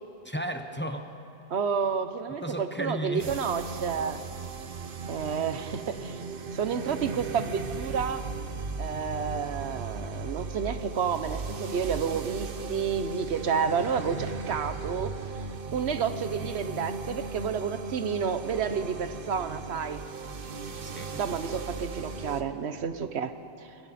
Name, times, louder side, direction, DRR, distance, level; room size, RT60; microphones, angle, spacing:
voice 1, 0.2-1.1 2.4-3.3 20.8-21.2, equal, 10° left, 6 dB, 0.9 m, -34 dB
voice 2, 1.5-4.2 5.1-6.2 6.5-8.2 8.8-15.1 15.7-20.0 21.2-23.7, right 6 dB, 80° right, 10 dB, 1.1 m, -30 dB
sound 1, 3.2-22.4, right 4 dB, 60° right, 1.1 m, -37 dB
28.5 x 21.5 x 4.2 m, 2.8 s
omnidirectional pair, 1.1 m